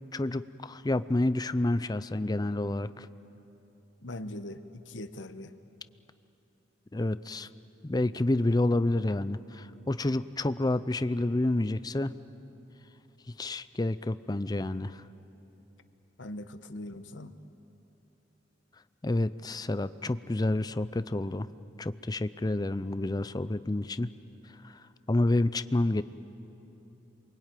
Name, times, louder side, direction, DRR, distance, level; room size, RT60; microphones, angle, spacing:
voice 1, 0.1-3.1 6.9-7.5 7.8-12.1 13.4-15.0 19.0-21.5 21.8-24.1 24.6-24.7 25.1-26.0, left 2 dB, 20° left, 14 dB, 0.5 m, -29 dB
voice 2, 4.0-5.5 16.2-17.4, left 1 dB, 90° left, 10 dB, 1.1 m, -41 dB
27.5 x 23.5 x 9.1 m, 3.0 s
head